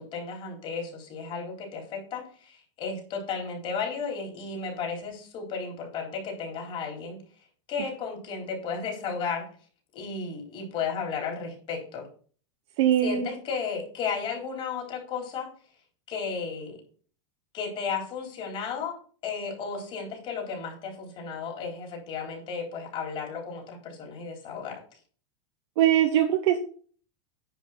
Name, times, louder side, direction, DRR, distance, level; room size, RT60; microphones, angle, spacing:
voice 1, 0.0-7.2 7.7-9.5 9.9-12.1 13.0-15.5 16.1-16.8 17.5-24.8, left 5 dB, 35° left, 1 dB, 4.0 m, -34 dB
voice 2, 12.8-13.3 25.8-26.6, right 11 dB, 70° right, 2 dB, 1.6 m, -21 dB
10.0 x 5.1 x 5.8 m, 0.42 s
supercardioid pair, 140°, 15 cm